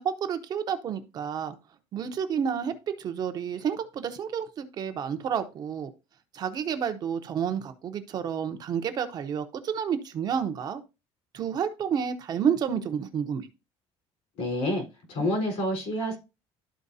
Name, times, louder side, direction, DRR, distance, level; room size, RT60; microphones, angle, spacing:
voice 1, 0.0-1.6 1.9-5.9 6.3-10.8 11.3-13.5, right 7 dB, 35° right, 0.7 m, -30 dB
voice 2, 14.4-16.2, left 1 dB, 70° left, 4.0 m, -28 dB
12.5 x 4.4 x 2.7 m
cardioid pair, 175°, 12 cm